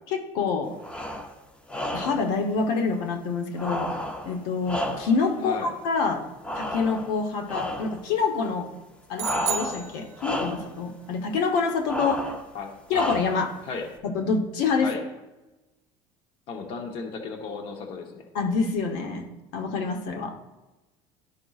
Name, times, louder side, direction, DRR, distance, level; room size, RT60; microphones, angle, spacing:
voice 1, 0.1-0.8 1.9-3.9 4.2-6.2 6.6-8.7 9.1-12.2 12.9-13.5 14.0-14.9 18.3-19.3 19.5-20.6, left 4 dB, 80° left, 5 dB, 0.9 m, -26 dB
sound 1, 0.8-1.3 1.7-2.3 3.6-5.3 6.4-7.2 7.5-8.0 9.2-9.9 10.2-10.7 11.9-12.5 12.9-13.5, equal, 10° left, 0.4 m, -32 dB
voice 2, 5.4-5.7 12.5-12.7 13.6-13.9 14.8-15.0 16.5-18.3, left 4 dB, 45° left, 4 dB, 0.9 m, -35 dB
sound 2, 9.2-10.6, right 8 dB, 55° right, 0.6 m, -32 dB
11.5 x 5.1 x 2.4 m, 1.0 s
cardioid pair, 160°, 12 cm